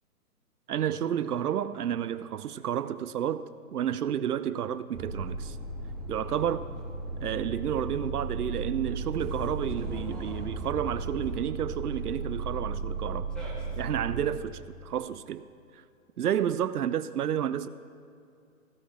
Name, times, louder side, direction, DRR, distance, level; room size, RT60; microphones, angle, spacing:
voice 1, 0.7-5.6 6.1-6.7 7.2-13.3 13.8-15.5 15.7-15.8 16.2-17.7, right 9 dB, 90° right, 0.6 m, -31 dB
sound 1, 4.9-14.3, right 3 dB, ahead, 1.5 m, -35 dB
16.0 x 12.5 x 3.7 m
hypercardioid pair, 145°, 45 cm